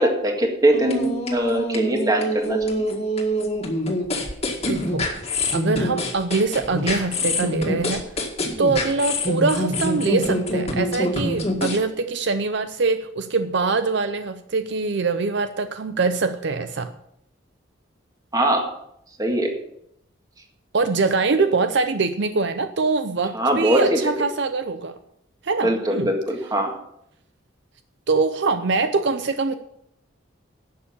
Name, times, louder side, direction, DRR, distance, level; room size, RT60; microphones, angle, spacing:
voice 1, 0.0-2.9 18.3-18.6 19.2-19.5 23.3-24.0 25.6-26.7, right 1 dB, 20° right, 2 dB, 1.8 m, -21 dB
sound 1, 0.7-11.8, left 1 dB, 30° left, 1.9 m, -25 dB
voice 2, 4.7-5.1 5.5-8.0 8.6-16.9 20.7-24.9 25.4-26.1 28.1-29.5, right 4 dB, 60° right, 9 dB, 0.6 m, -23 dB
11.0 x 7.1 x 7.0 m, 0.76 s
head